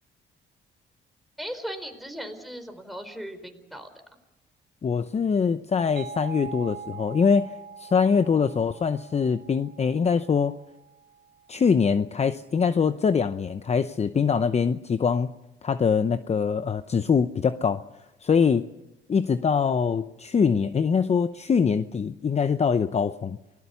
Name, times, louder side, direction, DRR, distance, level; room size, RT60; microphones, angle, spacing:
voice 1, 1.4-3.9, equal, ahead, 6 dB, 4.4 m, -37 dB
voice 2, 4.8-7.5 7.8-10.6 11.5-15.3 15.6-17.8 18.2-18.7 19.1-23.4, left 6 dB, 35° left, 12 dB, 0.8 m, -23 dB
sound 1, 6.0-11.4, right 7 dB, 60° right, 2.1 m, -43 dB
28.5 x 19.0 x 7.0 m, 0.98 s
cardioid pair, 90°, 20 cm